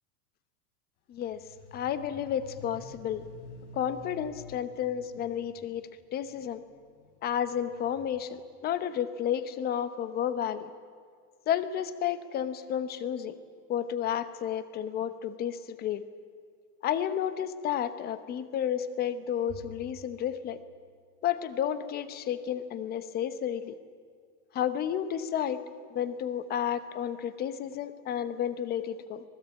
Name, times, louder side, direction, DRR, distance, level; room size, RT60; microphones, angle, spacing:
sound 1, 1.1-8.2, left 3 dB, 65° left, 5.0 m, -50 dB
voice 1, 1.1-1.4 1.7-3.3 3.7-6.6 7.2-10.7 11.5-13.4 13.7-16.1 16.8-20.6 21.2-23.8 24.5-25.6 25.9-29.2, left 9 dB, 20° left, 13 dB, 0.9 m, -31 dB
Bowed string instrument, 19.5-22.0, right 3 dB, 25° right, 2.9 m, -52 dB
26.0 x 20.0 x 8.6 m, 2.1 s
supercardioid pair, 170°, 47 cm